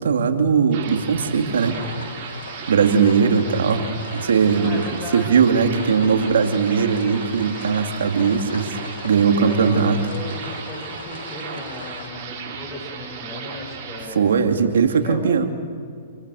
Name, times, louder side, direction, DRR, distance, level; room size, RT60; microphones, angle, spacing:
voice 1, 0.0-1.8 2.2-2.3 2.7-4.8 5.1-8.8 9.0-10.0 14.1-15.4, right 6 dB, 80° right, 5 dB, 2.6 m, -19 dB
sound 1, 0.7-14.1, right 6 dB, 45° right, 7.2 m, -36 dB
sound 2, 1.6-12.1, left 6 dB, 80° left, 2.1 m, -39 dB
voice 2, 4.5-6.4 9.3-14.4 14.8-15.5, left 2 dB, 30° left, 3 dB, 6.6 m, -36 dB
28.0 x 23.5 x 6.5 m, 2.2 s
hypercardioid pair, 130°, 0 cm